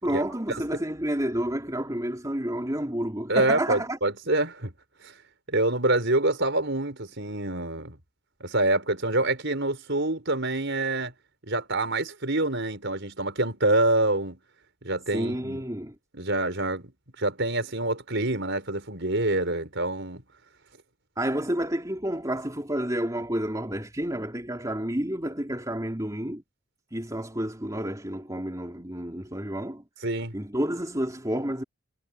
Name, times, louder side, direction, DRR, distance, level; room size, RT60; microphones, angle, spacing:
voice 1, 0.0-4.0 15.1-15.9 21.2-26.4 26.9-29.8 30.3-31.6, right 1 dB, 15° right, 3.4 m, -30 dB
voice 2, 3.3-4.7 5.0-5.1 5.5-8.0 8.4-11.1 11.5-14.4 14.8-15.6 16.1-16.8 17.2-20.2 30.0-30.4, right 2 dB, 55° right, 5.9 m, -26 dB
head